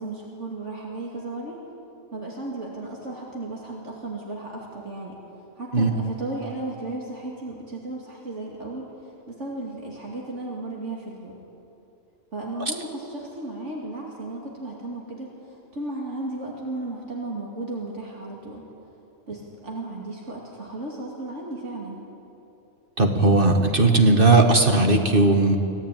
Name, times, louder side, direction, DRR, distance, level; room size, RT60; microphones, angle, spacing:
voice 1, 0.0-1.6 2.1-5.2 5.6-8.9 9.3-11.4 12.3-18.6 19.3-22.0, right 2 dB, 70° right, -2 dB, 2.9 m, -34 dB
voice 2, 23.0-25.6, right 2 dB, 45° right, 4 dB, 2.0 m, -17 dB
25.0 x 15.5 x 9.3 m, 2.9 s
omnidirectional pair, 1.3 m